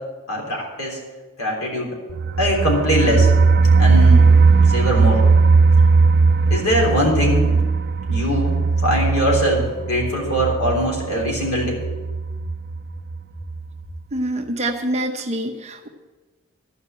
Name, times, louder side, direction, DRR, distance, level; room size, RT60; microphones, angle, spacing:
voice 1, 0.3-1.0 1.4-1.9 2.4-3.3 3.8-4.3 4.7-5.2 6.5-7.6 8.1-11.8, equal, 75° left, -1 dB, 3.5 m, -21 dB
sound 1, 2.1-12.8 13.1-13.2 13.6-13.7, right 4 dB, 45° right, 0.3 m, -17 dB
voice 2, 14.1-15.9, right 1 dB, 30° right, 4 dB, 0.8 m, -25 dB
13.0 x 5.3 x 8.5 m, 1.3 s
head